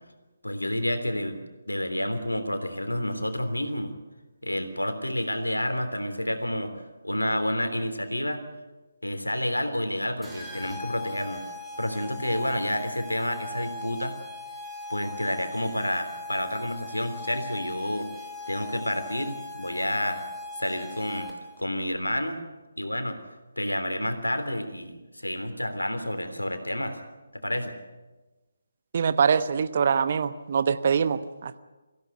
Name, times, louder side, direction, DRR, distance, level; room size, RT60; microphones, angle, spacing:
voice 1, 0.4-1.4 1.7-3.9 4.4-6.7 7.0-8.4 9.0-11.4 11.8-14.2 14.9-18.1 18.5-20.2 20.6-21.3 21.6-22.4 22.8-23.2 23.6-27.0 27.3-27.8, left 1 dB, 85° left, 8 dB, 3.3 m, -29 dB
sound 1, 10.2-21.6, left 3 dB, 5° right, 2.9 m, -39 dB
voice 2, 28.9-31.6, right 6 dB, 40° right, 13 dB, 1.0 m, -24 dB
23.0 x 16.0 x 9.3 m, 1.2 s
figure-of-eight pair, 145°, 0 cm